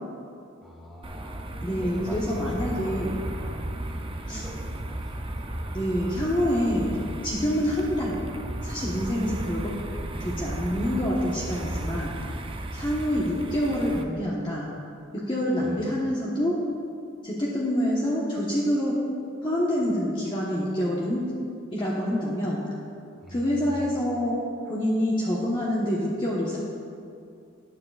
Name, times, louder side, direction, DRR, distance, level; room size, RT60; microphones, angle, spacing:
voice 1, 0.6-5.5 15.6-15.8 23.2-23.9, equal, ahead, -6 dB, 2.7 m, -43 dB
sound 1, 1.0-14.0, right 1 dB, 25° right, 0.6 m, -34 dB
voice 2, 1.6-3.1 4.3-4.4 5.7-7.0 7.2-8.2 8.6-9.7 10.2-12.1 12.7-14.7 15.1-16.6 17.2-19.0 19.4-21.3 21.7-22.6 23.3-24.4 24.6-26.6, equal, 25° left, -6 dB, 1.2 m, -26 dB
18.0 x 9.6 x 2.5 m, 2.5 s
head